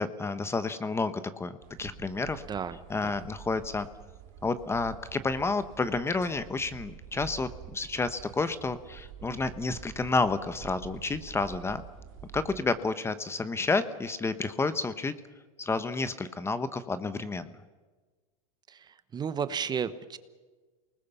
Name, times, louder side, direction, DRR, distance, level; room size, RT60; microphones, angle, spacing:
voice 1, 0.0-1.5 1.8-2.4 2.9-3.9 4.4-11.8 12.3-15.1 15.6-17.5, left 3 dB, 15° left, 12 dB, 1.0 m, -30 dB
inside quiet train, 1.6-12.6, right 9 dB, 60° right, 2.7 m, -47 dB
voice 2, 18.7-20.2, right 7 dB, 25° right, 13 dB, 1.2 m, -33 dB
28.0 x 20.0 x 7.0 m, 1.3 s
hypercardioid pair, 115°, 18 cm